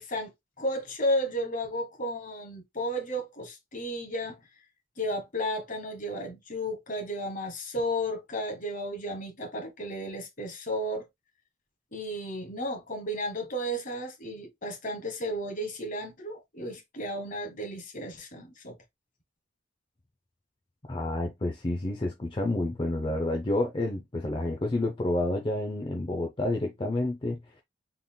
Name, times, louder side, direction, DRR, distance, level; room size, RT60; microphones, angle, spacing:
voice 1, 0.0-4.4 5.0-11.1 11.9-18.8, equal, 45° left, 1.2 m, -33 dB
voice 2, 20.8-27.6, left 2 dB, 25° left, 0.6 m, -29 dB
3.8 x 3.7 x 2.2 m
head